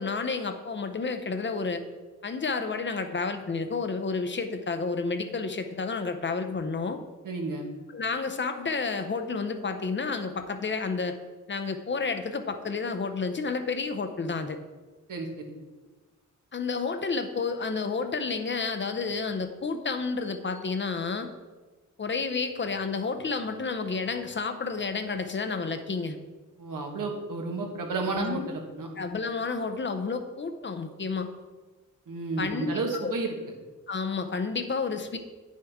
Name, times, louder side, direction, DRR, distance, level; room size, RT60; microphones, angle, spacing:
voice 1, 0.0-1.8 2.2-7.0 7.9-11.2 11.5-14.6 16.5-21.3 22.0-26.2 28.1-28.5 29.0-31.3 32.4-32.7 33.0-33.1 33.9-35.2, left 4 dB, 35° left, 7 dB, 0.6 m, -30 dB
voice 2, 7.2-7.7 15.1-15.5 26.6-28.9 32.1-33.3, right 3 dB, 90° right, 1 dB, 1.5 m, -32 dB
9.7 x 6.4 x 3.5 m, 1.3 s
wide cardioid pair, 150°, 31 cm